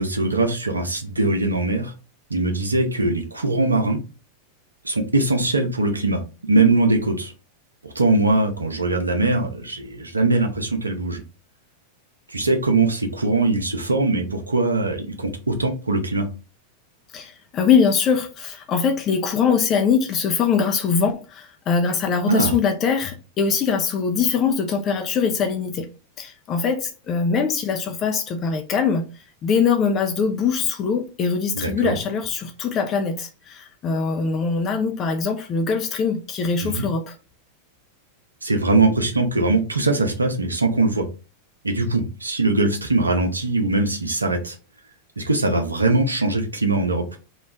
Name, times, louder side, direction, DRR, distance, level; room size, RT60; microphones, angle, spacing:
voice 1, 0.0-1.9 2.3-4.0 4.8-6.2 6.5-7.3 7.8-11.2 12.3-16.3 22.3-22.5 31.5-32.0 36.6-36.9 38.4-41.1 41.6-44.6 45.2-47.1, right 2 dB, 80° right, 0.6 m, -21 dB
voice 2, 17.1-25.9 26.2-37.2, left 6 dB, 30° left, 0.5 m, -22 dB
3.0 x 2.3 x 3.4 m
figure-of-eight pair, 90°, 0 cm